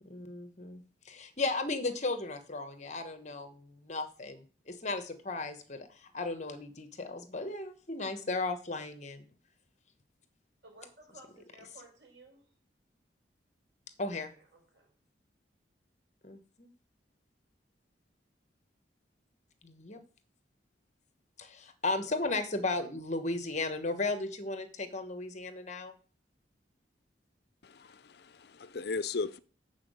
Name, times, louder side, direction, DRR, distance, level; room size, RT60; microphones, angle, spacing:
voice 1, 0.0-9.3 14.0-14.3 16.2-16.7 19.6-20.0 21.4-25.9, left 2 dB, 40° left, 1.2 m, -35 dB
voice 2, 10.6-12.5 14.1-14.9, right 2 dB, 85° right, 5.2 m, -56 dB
voice 3, 27.6-29.4, left 4 dB, 60° left, 0.5 m, -37 dB
7.1 x 6.1 x 7.8 m
head